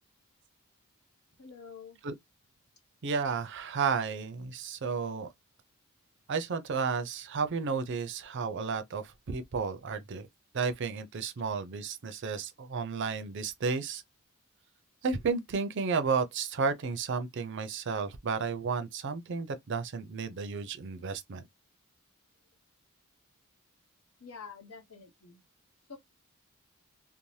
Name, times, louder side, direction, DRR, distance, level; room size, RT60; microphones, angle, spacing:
voice 1, 1.4-2.0 24.2-25.4 25.9-26.0, left 5 dB, 75° left, 0.8 m, -47 dB
voice 2, 3.0-5.3 6.3-10.3 10.5-14.0 15.0-21.4, right 5 dB, 55° right, 0.4 m, -32 dB
2.6 x 2.0 x 3.1 m
head